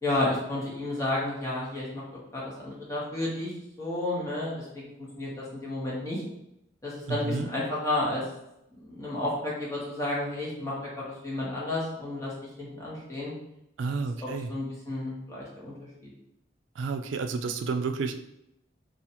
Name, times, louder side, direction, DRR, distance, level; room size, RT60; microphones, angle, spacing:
voice 1, 0.0-2.0 2.3-3.5 3.8-6.2 6.8-8.2 8.7-12.3 12.6-13.3 13.9-16.1, left 2 dB, 15° left, -6 dB, 1.1 m, -32 dB
voice 2, 7.1-7.5 13.8-14.5 16.8-18.2, right 4 dB, 85° right, 7 dB, 0.4 m, -30 dB
2.7 x 2.5 x 4.2 m, 0.83 s
head